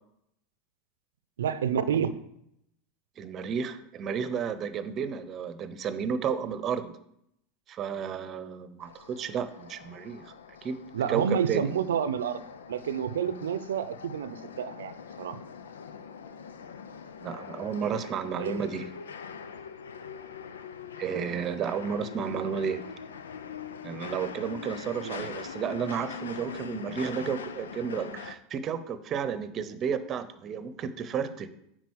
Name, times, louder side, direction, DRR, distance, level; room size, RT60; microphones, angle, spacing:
voice 1, 1.4-2.2 10.9-12.4 12.7-14.9 15.2-15.4 18.4-18.7 25.0-25.3, right 8 dB, 85° right, 13 dB, 0.6 m, -29 dB
voice 2, 3.2-6.9 7.7-10.2 10.6-10.8 11.1-11.6 17.2-18.9 21.0-22.8 23.8-31.5, right 7 dB, 40° right, 12 dB, 0.9 m, -32 dB
sound 1, 8.8-28.4, left 6 dB, 85° left, 0.6 m, -43 dB
9.5 x 3.8 x 6.4 m, 0.75 s
hypercardioid pair, 95°, 0 cm